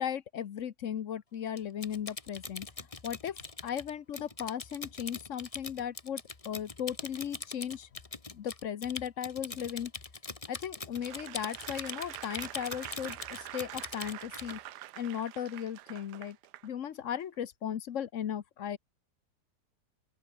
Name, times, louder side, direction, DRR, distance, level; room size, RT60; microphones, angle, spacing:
voice 1, 0.0-2.7 3.0-7.9 8.3-9.9 10.5-14.6 15.0-16.4 16.6-18.8, left 9 dB, 55° left, 1.1 m, -37 dB
Typing, 1.6-14.6, left 3 dB, 20° left, 1.4 m, -42 dB
Applause / Crowd, 10.9-16.7 17.2-17.3, right 14 dB, 90° right, 1.3 m, -45 dB
open air
omnidirectional pair, 1.7 m